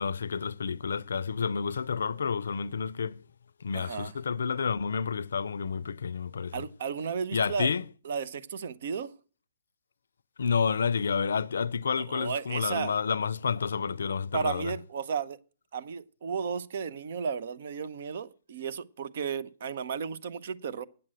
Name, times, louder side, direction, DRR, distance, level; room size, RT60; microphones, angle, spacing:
voice 1, 0.0-3.2 3.6-6.6 7.3-7.8 10.4-14.7, left 6 dB, 80° left, 0.5 m, -30 dB
voice 2, 3.7-4.2 6.5-7.7 8.0-9.1 12.1-12.9 14.3-15.4 15.7-20.8, right 6 dB, 60° right, 0.7 m, -34 dB
8.8 x 7.6 x 7.6 m
hypercardioid pair, 135°, 0 cm